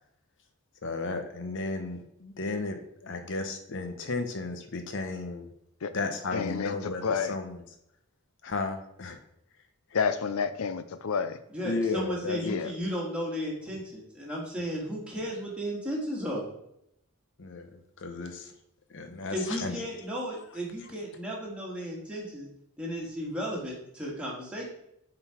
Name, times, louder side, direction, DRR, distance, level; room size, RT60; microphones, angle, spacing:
voice 1, 0.8-5.5 5.9-7.6 8.4-9.2 11.6-12.4 17.4-18.5 18.9-19.8, left 3 dB, 60° left, 6 dB, 0.9 m, -34 dB
voice 2, 6.3-7.3 9.9-11.4 12.4-12.7, left 5 dB, 75° left, 12 dB, 0.6 m, -29 dB
voice 3, 11.5-16.4 19.3-22.5 22.8-24.6, equal, 5° right, -4 dB, 1.8 m, -34 dB
7.6 x 4.1 x 4.4 m, 0.77 s
head